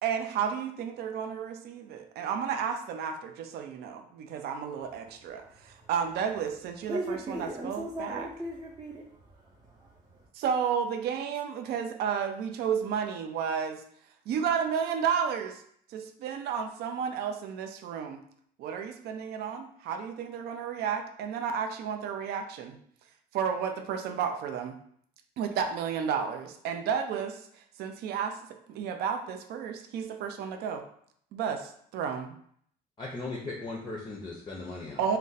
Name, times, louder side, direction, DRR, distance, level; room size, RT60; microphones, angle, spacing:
voice 1, 0.0-7.2 7.6-8.3 10.3-13.8 14.3-15.6 15.9-18.2 18.6-22.8 23.3-24.8 25.4-27.4 27.8-28.4 28.7-30.8 31.3-32.3 35.0-35.2, right 7 dB, 70° right, 0.4 m, -32 dB
voice 2, 4.8-5.9 6.8-10.3, right 1 dB, 20° right, 0.6 m, -39 dB
voice 3, 33.0-35.0, left 3 dB, 25° left, 0.5 m, -38 dB
2.5 x 2.1 x 3.9 m
cardioid pair, 110°, 17 cm